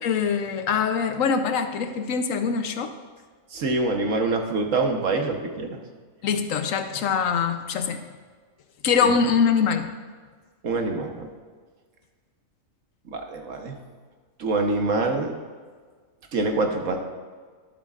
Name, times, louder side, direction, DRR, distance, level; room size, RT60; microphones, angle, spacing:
voice 1, 0.0-2.9 6.2-8.0 8.8-9.9, left 6 dB, 90° left, 8 dB, 1.2 m, -23 dB
voice 2, 3.5-5.8 9.0-9.1 10.6-11.3 13.1-13.7 14.4-15.3 16.3-17.0, right 3 dB, 75° right, 3 dB, 1.5 m, -25 dB
12.0 x 11.5 x 2.5 m, 1.6 s
omnidirectional pair, 1.4 m